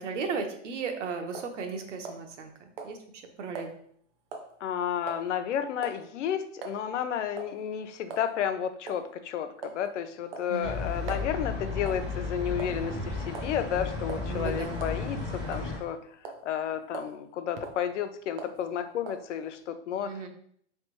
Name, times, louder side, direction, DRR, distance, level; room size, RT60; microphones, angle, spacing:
voice 1, 0.0-2.5 2.8-3.0 3.4-3.7 10.5-10.8 14.3-14.8 20.0-20.3, right 5 dB, 75° right, 5 dB, 0.9 m, -35 dB
sound 1, 1.3-1.6 2.1-2.5 2.8-3.0 3.6-3.7 4.3-4.5 5.1-5.2 5.8-6.0 6.6-6.8 7.4-7.6 8.1-8.3 8.9-9.0 9.6-9.9 10.3-11.3 11.9-12.1 12.6-12.9 13.4-13.6 14.1-14.3 14.8-15.0 15.5-15.9 16.3-16.5 16.9-17.2 17.6-17.8 18.4-18.6 19.1-19.3, right 4 dB, 50° right, 0.7 m, -41 dB
voice 2, 4.6-16.0 16.4-20.2, left 9 dB, 75° left, 9 dB, 0.6 m, -32 dB
sound 2, 10.6-15.8, left 3 dB, 10° right, 0.5 m, -34 dB
4.0 x 3.3 x 3.0 m, 0.64 s
supercardioid pair, 170°, 37 cm